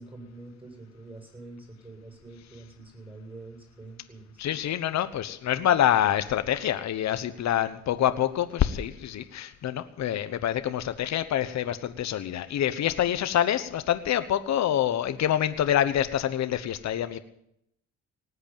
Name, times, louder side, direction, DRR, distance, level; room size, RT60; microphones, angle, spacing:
voice 1, 0.0-4.4, right 2 dB, 15° right, 3 dB, 7.4 m, -46 dB
voice 2, 4.4-17.2, left 11 dB, 65° left, 11 dB, 1.1 m, -26 dB
19.0 x 8.2 x 9.0 m, 0.74 s
cardioid pair, 90°, 30 cm